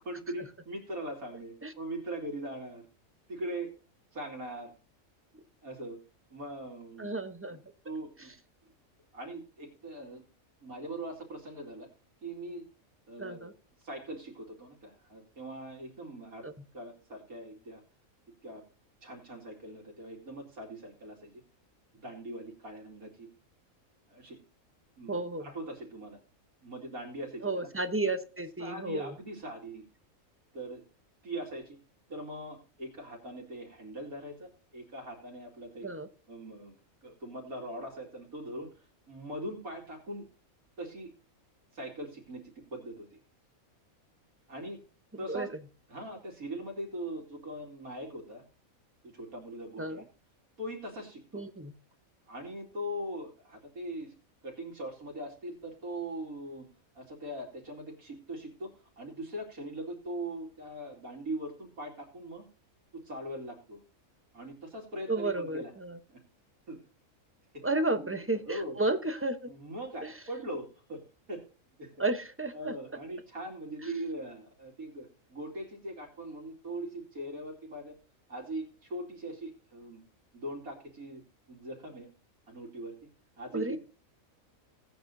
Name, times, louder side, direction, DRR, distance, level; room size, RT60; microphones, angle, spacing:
voice 1, 0.0-2.8 3.3-3.7 4.1-4.7 5.6-6.0 6.3-7.1 7.5-7.6 7.8-8.3 9.1-10.2 10.6-11.9 12.2-12.7 13.1-13.5 13.8-16.4 16.7-17.8 18.4-18.6 19.0-21.3 21.9-23.3 24.1-24.4 25.0-26.2 26.6-27.5 28.6-29.8 30.5-30.8 31.2-31.8 32.1-35.9 36.3-36.7 37.0-38.7 39.1-40.3 40.8-41.1 41.7-43.2 44.5-44.8 45.2-45.5 45.9-48.4 49.0-50.0 50.6-51.4 52.3-54.1 54.4-56.7 56.9-62.5 62.9-63.8 64.3-65.7 66.1-66.2 66.7-66.8 67.5-67.6 68.5-68.8 69.5-71.0 71.3-71.4 71.8-71.9 72.5-77.9 78.3-80.0 80.3-81.2 81.5-82.1 82.5-83.1 83.4-83.8, right 1 dB, 80° right, 0 dB, 3.0 m, -41 dB
voice 2, 7.0-7.6 13.2-13.5 16.4-16.5 25.1-25.5 27.4-29.1 35.8-36.1 45.3-45.5 49.8-50.0 51.3-51.7 65.1-66.0 67.6-69.5 70.0-70.1 72.0-72.7 73.8-73.9 83.5-83.8, right 2 dB, 10° right, 8 dB, 0.7 m, -32 dB
16.5 x 9.1 x 2.7 m, 0.35 s
omnidirectional pair, 1.5 m